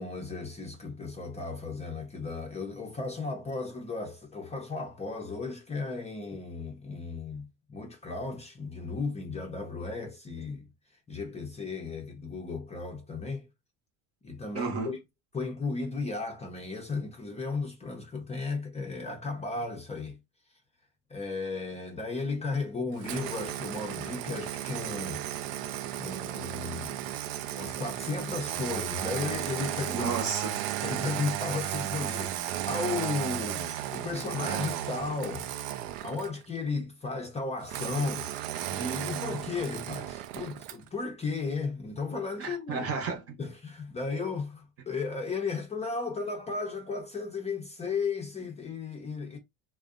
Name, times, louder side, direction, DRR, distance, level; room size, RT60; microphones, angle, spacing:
voice 1, 0.0-10.7 11.1-13.5 14.2-15.0 15.3-20.2 21.1-25.2 26.0-27.0 27.6-30.1 30.8-35.5 36.0-42.9 43.4-49.4, left 4 dB, 15° left, 0.5 m, -35 dB
voice 2, 14.5-14.9 29.9-30.6 42.4-43.4, right 4 dB, 35° right, 0.8 m, -32 dB
Engine starting, 23.0-36.4 37.7-40.9, right 13 dB, 65° right, 0.5 m, -34 dB
2.5 x 2.1 x 2.4 m
supercardioid pair, 100°, 40 cm